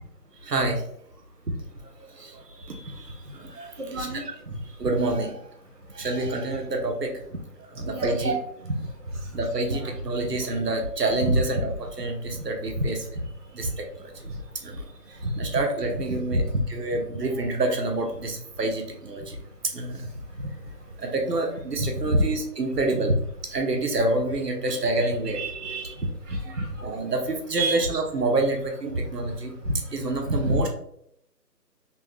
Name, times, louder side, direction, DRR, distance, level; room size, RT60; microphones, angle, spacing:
voice 1, 0.4-0.8 2.0-4.3 4.8-5.4 5.9-7.2 7.7-8.4 9.3-11.7 12.0-13.0 13.5-14.1 14.6-16.4 16.7-19.4 19.6-20.0 21.0-23.1 23.5-25.4 26.8-29.5 29.9-30.7, right 2 dB, 70° right, 2 dB, 1.0 m, -28 dB
voice 2, 3.8-4.5 7.9-8.1 9.7-9.9 11.3-11.4 12.8-12.9 15.2-15.3 16.3-16.4 21.8-22.2 25.3-25.9 26.3-27.0 27.5-27.8 29.7-29.8 30.2-30.6, right 1 dB, 50° right, -1 dB, 0.5 m, -27 dB
3.4 x 2.3 x 3.2 m, 0.72 s
figure-of-eight pair, 175°, 50 cm